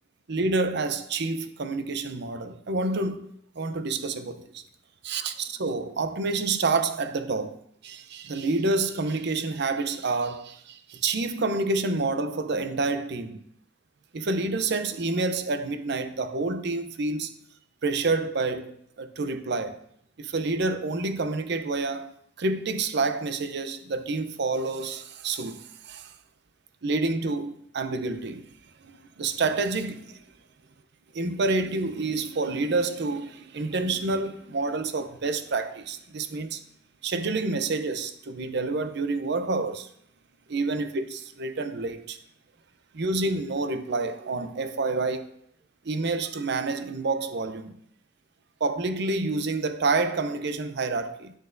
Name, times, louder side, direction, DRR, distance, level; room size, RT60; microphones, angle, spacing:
voice 1, 0.3-3.3 3.6-4.6 5.0-7.6 7.8-13.4 14.1-17.3 17.8-19.8 20.2-22.1 22.4-26.1 26.8-28.5 28.8-30.2 31.1-36.6 37.0-39.9 40.5-42.2 42.9-45.3 45.8-47.8 48.6-51.3, right 3 dB, 65° right, 0.6 m, -28 dB
8.9 x 6.3 x 2.6 m
head